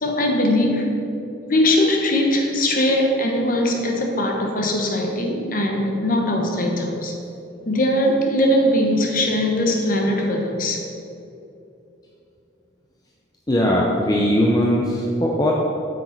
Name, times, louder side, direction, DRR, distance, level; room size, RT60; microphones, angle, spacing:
voice 1, 0.0-1.0 1.4-7.1 7.7-10.8, left 1 dB, 45° left, 2 dB, 1.0 m, -20 dB
voice 2, 13.5-15.5, equal, 20° left, -2 dB, 0.6 m, -19 dB
8.1 x 6.4 x 4.5 m, 2.8 s
head